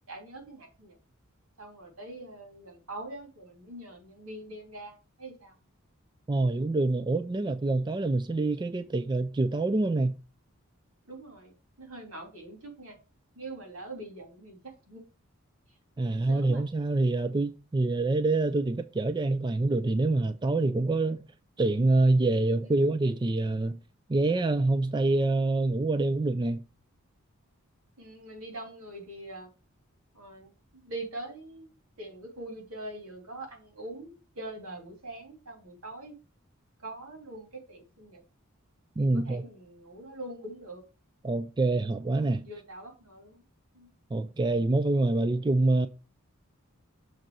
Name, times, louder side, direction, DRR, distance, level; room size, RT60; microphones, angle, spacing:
voice 1, 0.1-0.9 1.6-5.6 11.1-13.0 13.3-15.0 16.0-16.6 22.6-22.9 28.0-29.5 30.1-31.7 32.0-36.1 36.8-38.2 39.0-40.8 42.2-43.4 43.7-43.9, right 2 dB, 80° right, 2.9 m, -43 dB
voice 2, 6.3-10.1 16.0-21.2 21.6-23.7 24.1-26.6 39.0-39.4 41.2-42.4 44.1-45.9, right 2 dB, 20° right, 0.3 m, -26 dB
6.6 x 4.0 x 6.1 m
head